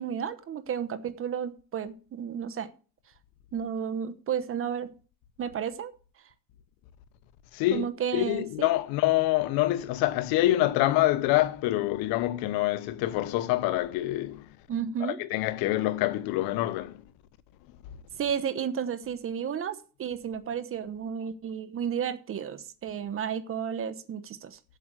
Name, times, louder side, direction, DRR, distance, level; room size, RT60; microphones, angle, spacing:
voice 1, 0.0-2.7 3.5-4.9 5.4-5.9 7.7-8.7 14.7-15.2 18.2-24.6, right 8 dB, 40° right, 1.0 m, -32 dB
voice 2, 7.5-14.5 15.0-17.0, left 15 dB, 85° left, 1.0 m, -26 dB
8.1 x 7.6 x 7.9 m
cardioid pair, 120°, 34 cm